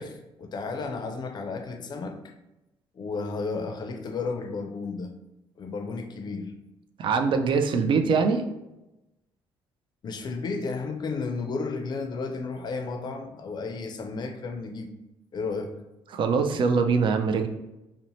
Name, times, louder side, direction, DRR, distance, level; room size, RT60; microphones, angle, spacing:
voice 1, 0.0-2.3 3.0-5.1 5.6-6.5 10.0-14.9 15.3-15.8, left 4 dB, 45° left, 7 dB, 0.4 m, -33 dB
voice 2, 7.0-8.4 16.1-17.5, right 5 dB, 55° right, 6 dB, 0.4 m, -23 dB
2.6 x 2.0 x 2.9 m, 0.96 s
supercardioid pair, 70°, 10 cm